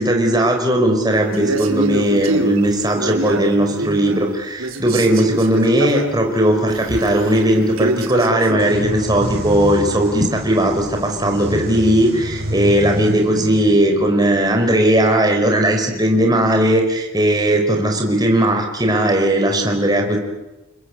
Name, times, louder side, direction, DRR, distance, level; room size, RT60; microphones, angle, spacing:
voice 1, 0.0-20.2, right 1 dB, 20° right, 2 dB, 4.9 m, -17 dB
Male speech man speaking, 1.3-4.3 4.6-8.7, right 2 dB, 80° right, 3.2 m, -25 dB
sound 1, 8.6-16.2, equal, 50° right, 5.7 m, -29 dB
30.0 x 21.5 x 8.5 m, 1.0 s
head